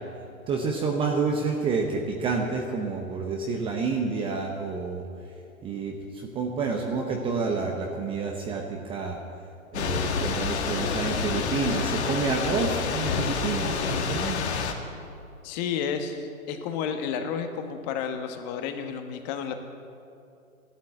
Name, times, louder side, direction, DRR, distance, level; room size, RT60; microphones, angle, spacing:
voice 1, 0.5-5.1 5.6-9.2 9.7-14.5, right 4 dB, 10° right, 2 dB, 0.7 m, -29 dB
Thunder / Rain, 9.7-14.7, left 5 dB, 50° left, 1.9 m, -28 dB
voice 2, 15.4-19.5, left 7 dB, 30° left, 7 dB, 1.3 m, -31 dB
14.5 x 11.5 x 7.7 m, 2.6 s
hypercardioid pair, 130°, 42 cm